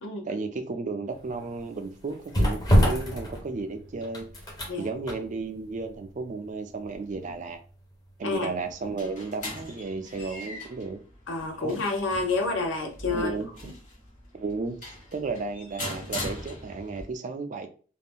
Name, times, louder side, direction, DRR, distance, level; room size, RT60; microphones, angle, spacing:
voice 1, 0.2-4.5 4.8-7.6 8.2-11.0 11.6-11.8 13.1-13.7 14.3-17.7, right 4 dB, 40° right, 0.3 m, -34 dB
sound 1, 1.1-9.0 9.4-9.5, equal, 20° left, 0.6 m, -28 dB
sound 2, 8.6-17.0, left 1 dB, 40° left, 1.0 m, -40 dB
voice 2, 11.3-13.3, left 3 dB, 70° left, 0.7 m, -29 dB
2.5 x 2.1 x 3.5 m
head